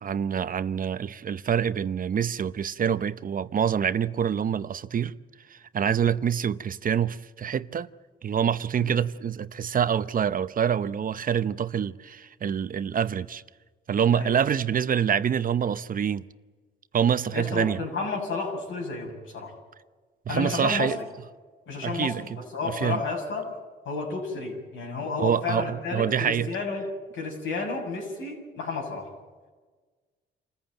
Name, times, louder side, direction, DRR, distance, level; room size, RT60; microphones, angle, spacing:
voice 1, 0.0-5.1 5.5-7.9 8.2-13.4 13.9-16.3 16.9-17.8 20.3-21.0 21.8-22.4 22.6-23.0 25.2-26.5, right 8 dB, 45° right, 0.8 m, -26 dB
voice 2, 17.3-19.5 20.3-21.0 21.7-23.6 23.9-26.8 27.1-29.1, left 4 dB, 80° left, 7.1 m, -31 dB
27.0 x 15.0 x 9.1 m
cardioid pair, 90°, 20 cm